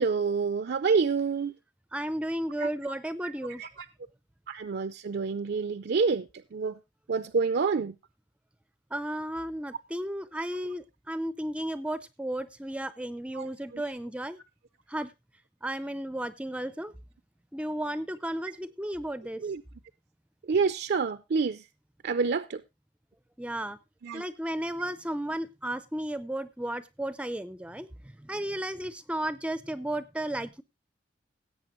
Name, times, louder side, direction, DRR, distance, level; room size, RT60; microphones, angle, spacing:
voice 1, 0.0-1.5 2.6-2.7 3.6-3.9 4.5-6.8 7.1-7.9 13.3-13.5 13.7-13.8 19.4-19.6 20.5-21.6 22.0-22.6 24.0-24.2, right 5 dB, 60° right, 0.5 m, -28 dB
voice 2, 1.9-3.6 8.9-14.4 14.9-15.1 15.6-16.9 17.5-19.4 23.4-23.8 24.1-30.6, right 1 dB, 5° right, 0.5 m, -34 dB
17.0 x 8.1 x 3.0 m
head